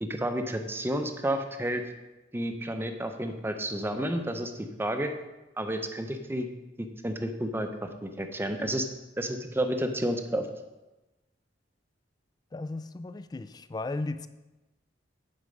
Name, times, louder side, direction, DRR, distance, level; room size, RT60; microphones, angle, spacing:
voice 1, 0.0-1.8 2.3-5.1 5.6-6.5 6.8-8.9 9.2-10.5, right 1 dB, 15° right, 6 dB, 0.7 m, -31 dB
voice 2, 12.5-14.3, left 2 dB, 20° left, 13 dB, 0.3 m, -35 dB
9.7 x 4.7 x 5.3 m, 1.1 s
head